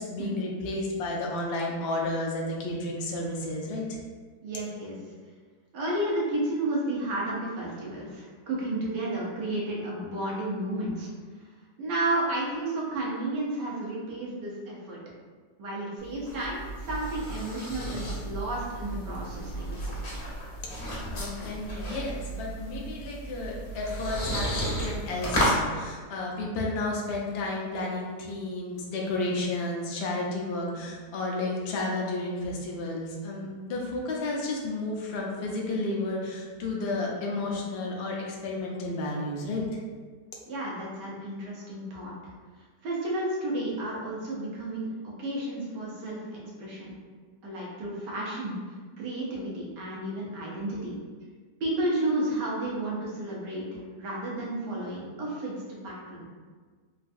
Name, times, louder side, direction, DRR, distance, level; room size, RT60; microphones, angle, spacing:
voice 1, 0.0-4.0 20.6-39.8, left 2 dB, 90° left, -2 dB, 0.5 m, -32 dB
voice 2, 4.4-5.0 5.7-11.1 11.8-15.0 15.6-16.6 16.9-19.9 40.5-42.1 42.8-46.9 47.4-48.5 49.0-50.9 51.6-56.2, right 1 dB, 90° right, -4 dB, 1.5 m, -32 dB
sound 1, 16.0-25.6, equal, 50° left, 0.6 m, -33 dB
3.7 x 2.3 x 2.5 m, 1.5 s
omnidirectional pair, 1.8 m